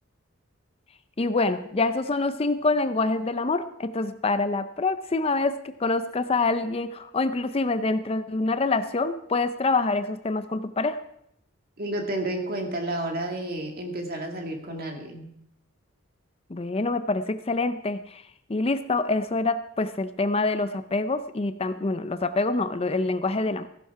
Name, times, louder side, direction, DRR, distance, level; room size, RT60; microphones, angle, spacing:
voice 1, 1.2-11.0 16.5-18.2 18.5-23.7, left 3 dB, 30° left, 11 dB, 0.5 m, -26 dB
voice 2, 11.8-15.3, right 1 dB, 45° right, 2 dB, 2.2 m, -31 dB
15.0 x 11.5 x 4.7 m, 0.73 s
head